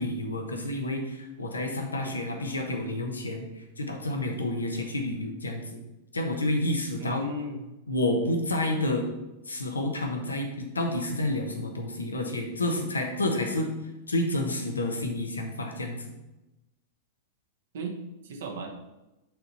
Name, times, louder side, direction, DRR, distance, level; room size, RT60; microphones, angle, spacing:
voice 1, 0.0-3.4 3.8-5.8 6.1-7.2 7.9-9.1 9.5-13.7 14.1-16.1, left 1 dB, 75° left, 3 dB, 1.1 m, -29 dB
voice 2, 7.0-7.6 17.7-18.0 18.2-18.7, right 2 dB, 60° right, 3 dB, 1.1 m, -35 dB
6.8 x 4.0 x 5.6 m, 0.99 s
figure-of-eight pair, 95°, 0 cm